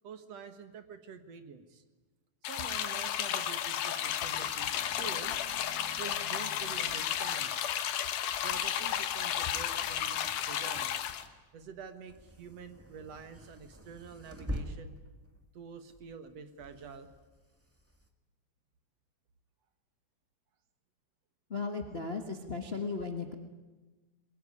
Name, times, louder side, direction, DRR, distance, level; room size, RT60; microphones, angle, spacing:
voice 1, 0.0-1.8 2.4-7.6 8.4-10.9 11.5-15.0 15.5-17.1, right 6 dB, 60° right, 9 dB, 2.4 m, -47 dB
sound 1, 2.4-11.2, left 10 dB, 85° left, 2.7 m, -33 dB
sound 2, 4.2-18.1, equal, 10° right, 0.9 m, -48 dB
voice 2, 21.5-23.3, left 4 dB, 35° left, 5 dB, 1.0 m, -36 dB
23.0 x 21.0 x 9.7 m, 1.2 s
omnidirectional pair, 3.5 m